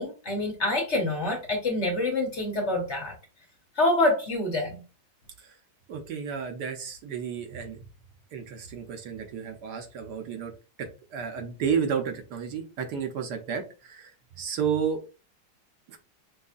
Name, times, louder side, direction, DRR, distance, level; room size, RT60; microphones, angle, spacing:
voice 1, 0.0-3.1 3.8-4.8, left 2 dB, 45° left, 2 dB, 1.1 m, -26 dB
voice 2, 5.9-7.8 8.3-10.5 10.8-15.0 15.9-16.0, right 7 dB, 70° right, 5 dB, 1.3 m, -32 dB
5.4 x 3.2 x 2.4 m, 0.32 s
omnidirectional pair, 1.9 m